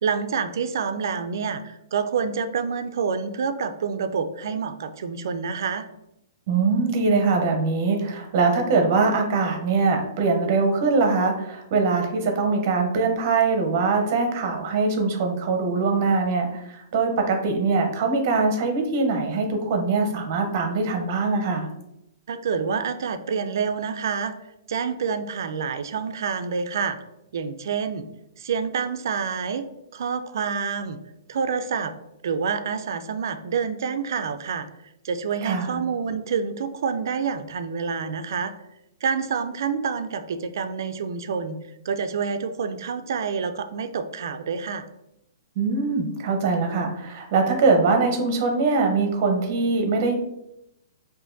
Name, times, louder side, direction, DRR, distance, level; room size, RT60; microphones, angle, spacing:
voice 1, 0.0-5.9 22.3-24.4 24.7-27.0 27.3-28.0 28.4-29.7 29.9-31.0 31.3-31.9 32.2-34.7 35.0-38.5 39.0-41.6 41.9-44.8, right 6 dB, 65° right, 9 dB, 0.3 m, -27 dB
voice 2, 6.5-21.7 35.4-35.8 45.6-50.1, right 4 dB, 40° right, 4 dB, 0.7 m, -22 dB
4.8 x 2.6 x 2.6 m, 0.85 s
hypercardioid pair, 165°, 2 cm